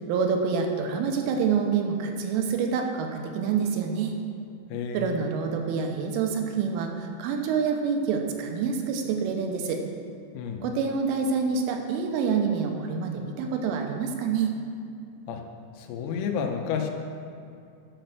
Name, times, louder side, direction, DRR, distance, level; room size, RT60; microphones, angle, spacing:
voice 1, 0.1-4.2 4.9-9.8 10.6-14.5, right 6 dB, 80° right, 3 dB, 3.2 m, -27 dB
voice 2, 4.7-5.2 10.3-10.6 15.3-15.4 15.8-16.9, left 7 dB, 90° left, 2 dB, 3.6 m, -30 dB
11.5 x 6.0 x 6.6 m, 2.5 s
omnidirectional pair, 5.9 m